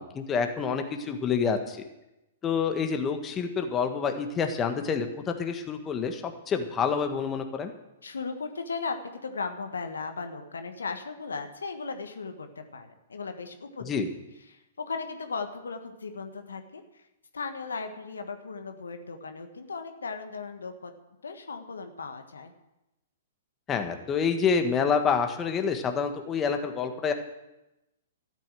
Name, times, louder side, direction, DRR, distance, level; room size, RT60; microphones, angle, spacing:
voice 1, 0.0-1.8 2.4-7.7 13.9-14.1 23.7-27.1, left 6 dB, 20° left, 6 dB, 1.5 m, -28 dB
voice 2, 8.0-13.9 14.5-17.1 17.3-20.9 21.2-22.5, left 4 dB, 80° left, 7 dB, 1.5 m, -37 dB
13.5 x 9.1 x 7.6 m, 0.94 s
figure-of-eight pair, 115°, 0 cm